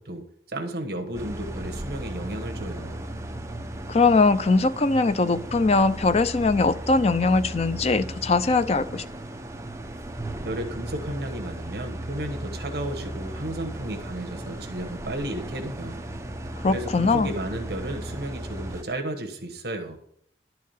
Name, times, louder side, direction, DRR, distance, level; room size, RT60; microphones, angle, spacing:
voice 1, 0.0-3.1 10.4-16.0 16.7-20.0, right 1 dB, 60° right, 5 dB, 1.1 m, -33 dB
sound 1, 1.1-18.8, right 1 dB, 15° right, 0.6 m, -36 dB
voice 2, 3.9-9.0 16.6-17.3, left 3 dB, 35° left, 12 dB, 0.5 m, -21 dB
11.5 x 4.7 x 7.2 m, 0.68 s
head